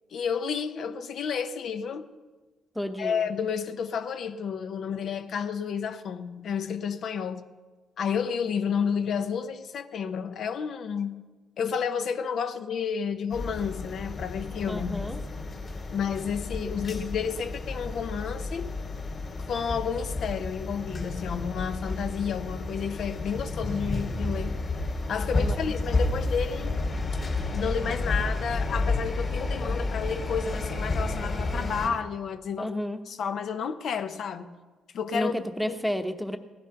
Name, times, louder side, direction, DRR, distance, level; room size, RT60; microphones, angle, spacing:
voice 1, 0.1-2.1 3.0-7.4 8.0-11.2 11.6-15.1 15.9-18.8 19.5-24.6 25.1-26.8 27.5-32.8 33.1-34.5 34.9-35.3 35.7-35.8, left 6 dB, 65° left, 0.8 m, -31 dB
voice 2, 2.7-3.3 14.7-15.2 25.4-25.6 32.6-33.0 35.1-36.4, equal, ahead, 1.0 m, -31 dB
sound 1, 13.3-31.9, left 2 dB, 40° left, 3.1 m, -31 dB
16.0 x 11.0 x 5.8 m
cardioid pair, 90°, 0 cm